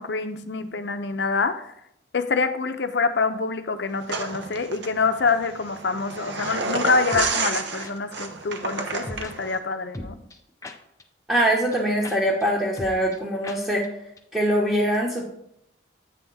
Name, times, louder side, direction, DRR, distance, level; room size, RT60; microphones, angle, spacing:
voice 1, 0.0-1.7 2.1-10.2, left 4 dB, 65° left, 9 dB, 0.6 m, -26 dB
sound 1, 4.1-9.6, right 3 dB, 65° right, 0.7 m, -30 dB
sound 2, 6.4-6.5 7.1-7.3 7.8-7.9 9.1-9.3 9.9-11.0 11.4-11.5 11.7-11.8 12.0-12.2 12.4-12.5 12.8-13.2 13.4-13.6 13.8-13.9 14.2-14.3, left 2 dB, 15° left, 0.5 m, -37 dB
voice 2, 11.3-13.9 14.3-15.2, right 1 dB, 5° right, -5 dB, 0.9 m, -23 dB
8.3 x 3.5 x 5.4 m, 0.77 s
head